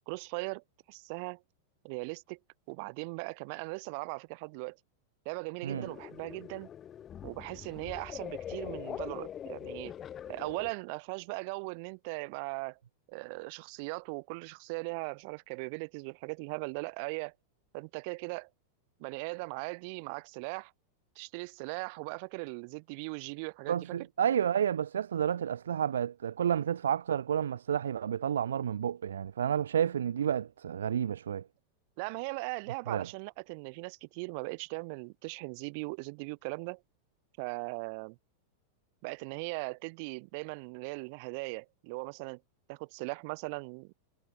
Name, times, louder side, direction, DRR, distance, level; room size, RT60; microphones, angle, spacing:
voice 1, 0.1-1.4 1.8-2.4 2.7-4.8 5.3-6.7 7.2-9.9 10.3-12.8 13.1-17.3 17.7-18.5 19.0-20.7 21.2-24.0 32.0-36.8 37.4-38.2 39.0-42.4 42.7-43.9, right 32 dB, 45° right, 3.7 m, -39 dB
sound 1, 5.7-10.7, left 9 dB, 25° left, 2.6 m, -43 dB
voice 2, 23.7-31.4 32.9-33.1, right 9 dB, 65° right, 1.1 m, -30 dB
figure-of-eight pair, 90°, 0 cm